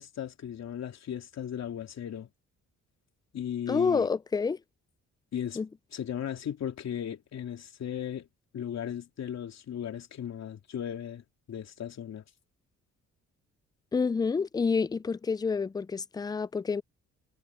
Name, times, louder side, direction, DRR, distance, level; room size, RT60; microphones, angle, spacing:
voice 1, 0.0-2.3 3.3-4.1 5.3-5.6 5.9-8.3 8.5-12.2, left 9 dB, 60° left, 3.0 m, -36 dB
voice 2, 3.7-4.6 5.6-5.7 13.9-16.8, left 5 dB, 15° left, 0.4 m, -28 dB
cardioid pair, 90°, 30 cm